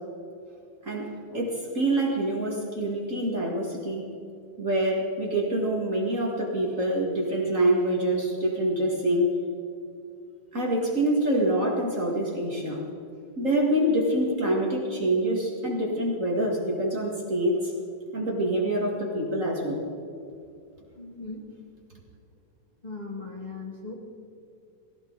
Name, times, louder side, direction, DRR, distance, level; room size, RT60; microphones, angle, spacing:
voice 1, 0.8-4.1 4.6-9.3 10.5-12.9 13.4-17.6 18.1-19.8, right 1 dB, 30° right, -2 dB, 2.0 m, -26 dB
voice 2, 21.0-21.4 22.8-23.9, left 3 dB, 20° left, -2 dB, 1.2 m, -38 dB
17.5 x 17.5 x 4.0 m, 2.5 s
omnidirectional pair, 3.3 m